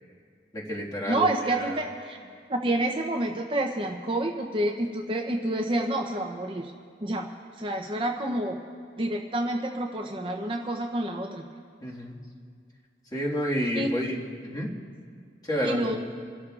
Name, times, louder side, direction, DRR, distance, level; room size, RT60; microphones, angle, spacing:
voice 1, 0.5-1.9 11.8-12.2 13.1-14.1 14.4-14.7 15.4-15.9, equal, 20° left, -4 dB, 1.8 m, -30 dB
voice 2, 1.1-2.2 2.5-6.7 7.0-7.3 7.6-8.6 9.0-11.4 13.7-13.9 15.6-16.0, right 1 dB, 25° right, 2 dB, 0.7 m, -28 dB
30.0 x 13.0 x 2.5 m, 2.2 s
head